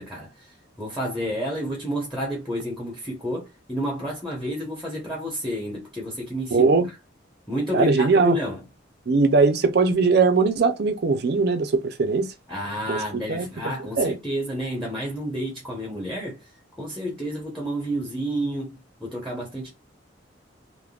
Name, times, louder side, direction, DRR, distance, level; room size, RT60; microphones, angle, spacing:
voice 1, 0.0-6.7 7.5-8.6 12.5-16.5 16.8-19.7, equal, ahead, 0.8 m, -30 dB
voice 2, 6.5-6.9 7.7-8.4 9.1-12.3 12.9-13.5 14.0-14.1, right 4 dB, 55° right, 0.5 m, -20 dB
3.4 x 2.1 x 2.3 m
head